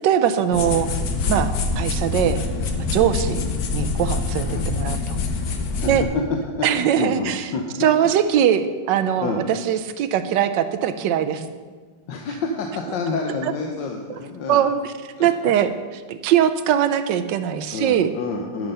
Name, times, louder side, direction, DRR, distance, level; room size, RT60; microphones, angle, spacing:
voice 1, 0.0-0.9 1.3-1.5 1.8-2.4 2.8-3.4 3.7-5.2 5.8-6.0 6.6-7.5 7.8-11.5 14.5-14.8 15.2-18.1, right 9 dB, 85° right, 11 dB, 1.3 m, -21 dB
sound 1, 0.5-6.0, left 4 dB, 60° left, 1.3 m, -25 dB
voice 2, 6.6-7.6 8.0-8.1 9.2-9.4 12.1-14.6 15.2-15.6 17.7-18.7, left 4 dB, 85° left, 2 dB, 1.5 m, -29 dB
11.0 x 6.7 x 5.5 m, 1.5 s
omnidirectional pair, 1.9 m